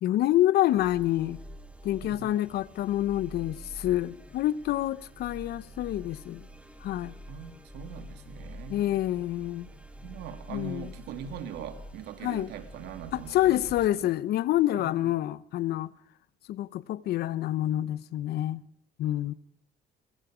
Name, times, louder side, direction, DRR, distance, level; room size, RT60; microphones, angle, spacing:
voice 1, 0.0-1.4 1.8-6.4 6.8-7.1 8.7-9.7 10.5-10.9 12.2-12.5 13.1-15.9 16.5-18.6 19.0-19.3, left 13 dB, 70° left, 0.8 m, -27 dB
sound 1, 0.7-13.9, equal, 5° right, 2.9 m, -47 dB
voice 2, 2.0-2.4 7.3-8.9 10.0-13.7 14.0-14.1 14.8-15.1, right 8 dB, 80° right, 2.6 m, -42 dB
24.0 x 23.0 x 5.1 m
cardioid pair, 110°, 17 cm